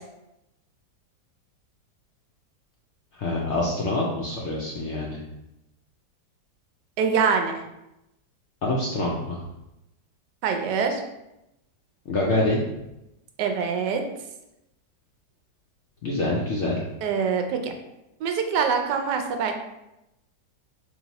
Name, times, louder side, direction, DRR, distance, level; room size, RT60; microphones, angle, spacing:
voice 1, 3.1-5.2 8.6-9.4 12.1-12.6 16.0-16.8, left 2 dB, 70° left, -3 dB, 0.6 m, -26 dB
voice 2, 7.0-7.6 10.4-11.0 13.4-14.0 17.0-17.7 18.2-19.6, right 6 dB, 90° right, 5 dB, 1.2 m, -24 dB
3.3 x 2.8 x 4.0 m, 0.90 s
omnidirectional pair, 1.8 m